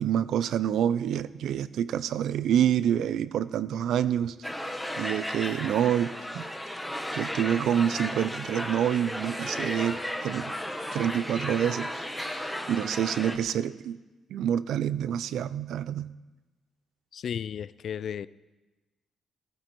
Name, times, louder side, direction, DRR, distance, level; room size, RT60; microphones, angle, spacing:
voice 1, 0.0-4.4 5.0-6.5 7.1-10.5 10.9-11.9 12.7-14.0 14.3-16.1, right 10 dB, 80° right, 17 dB, 0.5 m, -27 dB
sound 1, 4.4-13.4, left 1 dB, 5° left, 1.5 m, -34 dB
voice 2, 17.1-18.3, left 8 dB, 65° left, 18 dB, 0.4 m, -34 dB
15.5 x 15.0 x 4.6 m, 1.1 s
cardioid pair, 80°, 0 cm